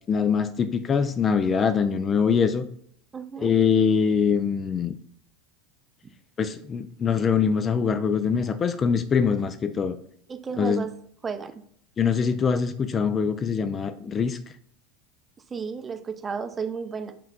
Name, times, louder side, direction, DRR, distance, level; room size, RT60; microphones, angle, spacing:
voice 1, 0.1-2.7 3.4-5.0 6.4-10.0 10.6-10.9 12.0-14.4, left 6 dB, 30° left, 11 dB, 0.3 m, -23 dB
voice 2, 3.1-3.5 10.3-10.9 11.2-11.5 15.5-17.1, right 5 dB, 25° right, 8 dB, 0.5 m, -32 dB
4.4 x 2.3 x 3.8 m, 0.65 s
hypercardioid pair, 90°, 0 cm